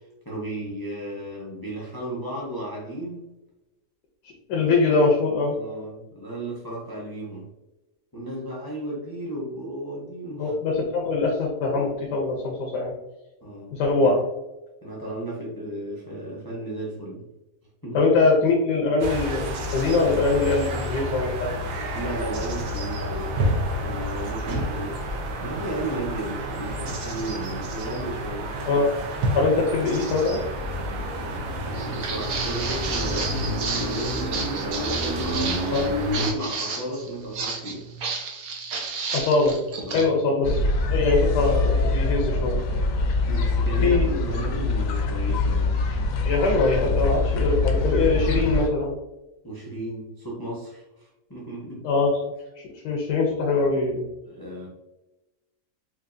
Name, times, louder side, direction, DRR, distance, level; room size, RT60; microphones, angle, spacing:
voice 1, 0.0-3.3 4.5-4.6 5.5-7.5 8.1-10.5 13.4-14.2 14.8-17.2 17.8-18.0 21.9-23.3 23.8-25.0 25.4-28.6 31.8-37.9 39.8-40.2 43.3-45.8 49.4-51.9 54.2-54.7, right 1 dB, 25° left, -5 dB, 0.5 m, -34 dB
voice 2, 4.5-5.6 10.4-12.9 13.7-14.2 17.9-21.5 28.7-28.9 29.3-30.4 35.7-35.8 39.1-39.6 39.9-40.6 40.9-42.6 43.8-44.1 46.2-48.9 51.8-52.1 52.6-54.1, left 3 dB, 85° left, -1 dB, 1.3 m, -22 dB
sound 1, 19.0-36.3, equal, 85° right, 1.3 m, -29 dB
Walk footsteps, 31.7-40.0, right 4 dB, 65° right, 1.1 m, -32 dB
sound 2, 40.4-48.7, left 3 dB, 65° left, 0.9 m, -24 dB
4.5 x 2.6 x 2.5 m, 1.0 s
omnidirectional pair, 1.7 m